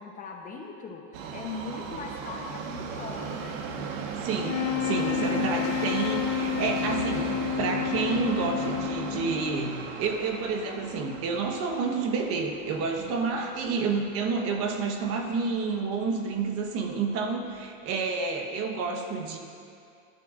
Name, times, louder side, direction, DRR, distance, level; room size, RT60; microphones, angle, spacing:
voice 1, 0.0-3.6 13.4-13.5, left 4 dB, 20° left, 1 dB, 0.9 m, -40 dB
Subway metro underground, 1.1-15.3 15.6-15.7 16.5-16.6 16.9-17.0 17.6-17.7, right 5 dB, 75° right, 1.4 m, -37 dB
voice 2, 4.2-19.4, right 4 dB, 35° right, 4 dB, 1.2 m, -29 dB
sound 1, 4.4-9.8, left 11 dB, 65° left, 0.8 m, -30 dB
19.5 x 11.5 x 2.5 m, 2.4 s
supercardioid pair, 150°, 39 cm